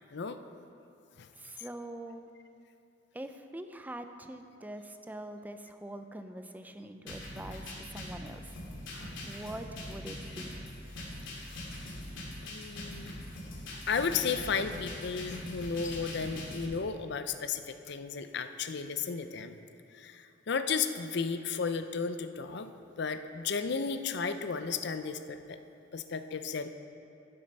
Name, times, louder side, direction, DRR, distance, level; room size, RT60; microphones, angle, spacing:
voice 1, 1.4-2.3 3.1-8.5 9.2-10.6, right 1 dB, 10° right, 7 dB, 0.5 m, -44 dB
sound 1, 7.1-16.7, left 1 dB, 85° left, 2.3 m, -42 dB
voice 2, 12.4-13.3 13.7-19.6 19.9-22.7 23.0-25.6 25.9-26.7, left 5 dB, 60° left, 9 dB, 0.5 m, -34 dB
11.5 x 7.7 x 5.4 m, 2.6 s
head